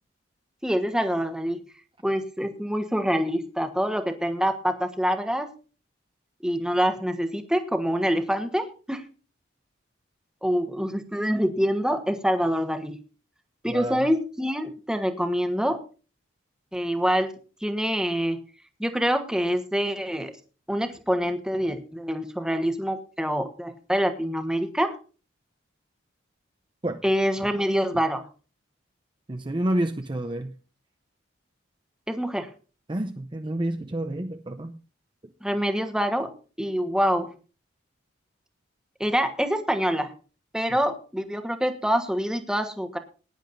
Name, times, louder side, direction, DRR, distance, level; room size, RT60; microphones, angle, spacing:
voice 1, 0.6-1.6 2.0-5.5 6.4-9.0 10.4-13.0 13.6-15.8 16.7-17.3 17.6-18.4 18.8-20.3 20.7-25.0 27.0-28.3 32.1-32.5 35.4-36.3 36.6-37.3 39.0-40.1 40.5-43.0, equal, 5° right, 7 dB, 1.2 m, -26 dB
voice 2, 13.7-14.1 26.8-27.0 29.3-30.5 32.9-34.8, right 1 dB, 25° right, 6 dB, 0.6 m, -29 dB
20.0 x 10.5 x 2.6 m, 0.36 s
head